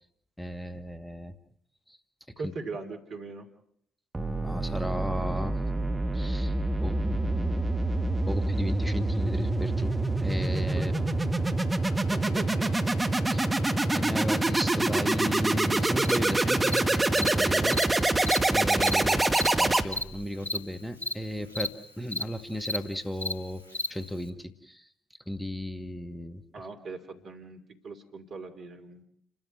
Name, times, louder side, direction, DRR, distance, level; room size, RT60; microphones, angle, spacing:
voice 1, 0.4-1.4 1.9-2.0 2.4-2.5 4.4-5.6 6.1-6.5 6.8-7.8 8.3-11.1 13.3-13.4 13.9-17.8 18.5-23.6 23.9-24.9 25.3-26.7, left 1 dB, 5° left, 7 dB, 2.1 m, -35 dB
voice 2, 2.4-3.5 10.8-11.0 12.1-12.9 19.1-19.3 26.5-29.0, right 4 dB, 55° right, 5 dB, 3.0 m, -40 dB
sound 1, 4.1-20.3, right 2 dB, 20° right, 1.9 m, -26 dB
Cricket, 16.0-16.2 16.7-16.8 17.2-17.3 17.7-17.8 18.2-18.4 18.8-18.9 19.3-19.5 19.9-20.0 20.4-20.6 21.0-21.1 21.5-21.7 22.1-22.2 22.6-22.8 23.2-23.3 23.7-23.9, left 1 dB, 90° left, 1.2 m, -31 dB
30.0 x 13.0 x 7.9 m, 0.69 s
figure-of-eight pair, 40°, 0 cm